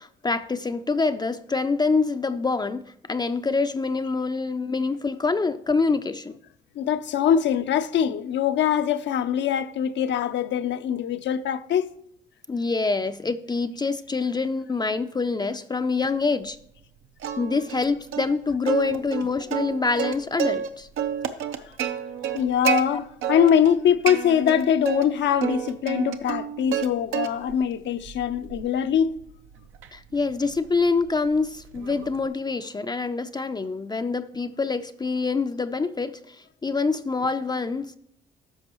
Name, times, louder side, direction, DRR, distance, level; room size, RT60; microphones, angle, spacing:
voice 1, 0.0-6.3 12.5-16.6 17.4-20.9 22.9-23.0 29.9-38.0, left 4 dB, 20° left, 0.4 m, -26 dB
voice 2, 6.8-11.9 22.3-29.1, left 9 dB, 65° left, 0.5 m, -23 dB
Plucked string instrument, 17.2-17.9 18.1-18.3 18.7-20.7 21.0-22.8 23.2-23.8 24.1-25.0 25.4-26.9 27.1-27.6 28.0-32.3, right 9 dB, 90° right, 0.7 m, -29 dB
13.0 x 5.4 x 3.0 m
cardioid pair, 90°, 20 cm